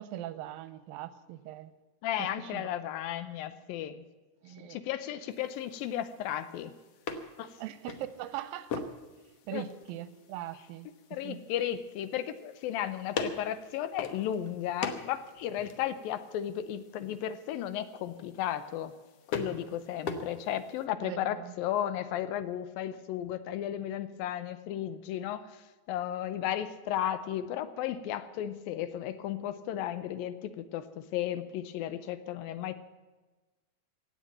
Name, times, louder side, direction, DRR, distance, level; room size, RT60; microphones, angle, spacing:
voice 1, 0.0-1.7 2.2-2.7 4.4-4.8 7.6-8.9 9.5-10.9 11.2-11.4 20.0-20.1 21.0-21.5, right 12 dB, 80° right, 14 dB, 2.4 m, -41 dB
voice 2, 2.0-4.0 4.7-6.7 7.4-7.5 9.5-9.6 11.1-18.9 19.3-25.6 25.9-32.8, left 11 dB, 80° left, 13 dB, 2.5 m, -34 dB
sound 1, 5.3-20.9, left 5 dB, 65° left, 1.6 m, -43 dB
17.0 x 8.1 x 8.8 m, 1.2 s
omnidirectional pair, 4.3 m